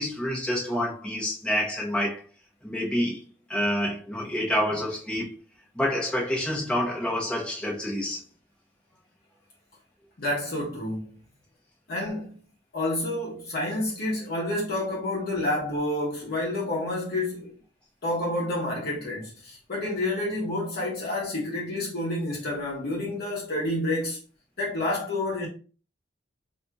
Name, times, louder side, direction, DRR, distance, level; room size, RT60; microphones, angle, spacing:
voice 1, 0.0-2.2 2.6-3.2 3.5-5.4 5.7-8.2, equal, 5° left, 1.0 m, -28 dB
voice 2, 10.2-11.2 11.9-12.3 12.7-17.5 18.0-24.2 24.6-25.5, left 1 dB, 55° left, 1.0 m, -29 dB
4.3 x 2.7 x 2.3 m
head